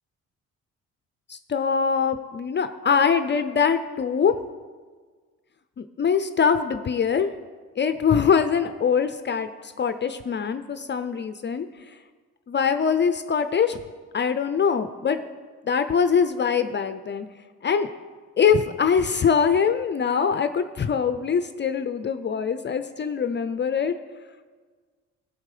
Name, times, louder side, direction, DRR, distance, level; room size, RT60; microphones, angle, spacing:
voice 1, 1.3-4.4 5.8-7.3 7.8-11.7 12.5-13.8 14.1-15.2 15.7-17.3 17.6-17.9 18.4-24.0, left 6 dB, 35° left, 10 dB, 0.6 m, -23 dB
15.5 x 7.3 x 5.0 m, 1.5 s
cardioid pair, 90°, 30 cm